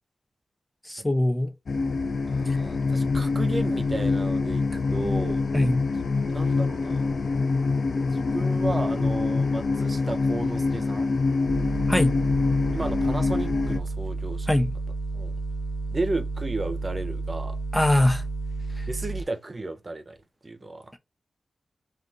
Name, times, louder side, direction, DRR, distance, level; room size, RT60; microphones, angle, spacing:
voice 1, 0.9-1.5 5.5-5.8 11.9-12.1 14.5-14.7 17.7-18.2 18.8-18.9, left 1 dB, 15° left, 0.5 m, -22 dB
sound 1, 1.7-13.8, left 4 dB, 70° left, 0.3 m, -25 dB
voice 2, 2.3-5.4 6.2-7.1 8.1-11.1 12.7-14.5 15.1-15.4 15.9-17.6 18.9-20.2 20.4-20.9, right 2 dB, 45° right, 0.5 m, -33 dB
sound 2, 11.5-19.2, right 3 dB, 90° left, 0.8 m, -31 dB
2.5 x 2.2 x 3.7 m
cardioid pair, 40°, 0 cm